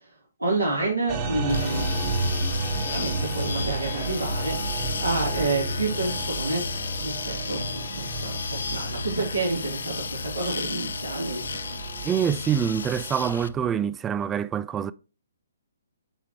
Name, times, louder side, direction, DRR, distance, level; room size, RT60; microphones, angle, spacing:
voice 1, 0.4-2.0 2.8-11.5, right 2 dB, 85° right, 3.3 m, -29 dB
sound 1, 1.1-13.7, right 2 dB, 35° right, 1.4 m, -32 dB
sound 2, 1.5-13.5, left 5 dB, 70° left, 0.5 m, -34 dB
voice 2, 12.0-14.9, right 8 dB, 15° right, 0.3 m, -25 dB
9.5 x 3.6 x 3.0 m
figure-of-eight pair, 135°, 0 cm